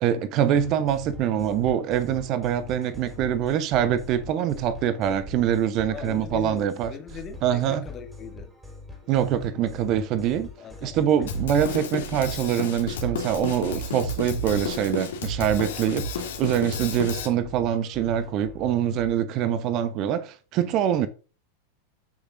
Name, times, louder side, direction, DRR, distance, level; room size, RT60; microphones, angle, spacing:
voice 1, 0.0-6.9 7.4-7.8 9.1-10.5 10.8-21.1, right 9 dB, 40° right, 0.9 m, -24 dB
sound 1, 0.5-19.1, equal, 10° right, 4.5 m, -44 dB
voice 2, 5.9-8.5 10.6-11.1 18.6-18.8, left 8 dB, 25° left, 2.2 m, -40 dB
Drum kit, 11.3-17.3, left 3 dB, 60° left, 2.5 m, -31 dB
14.5 x 6.7 x 2.6 m
figure-of-eight pair, 90°, 0 cm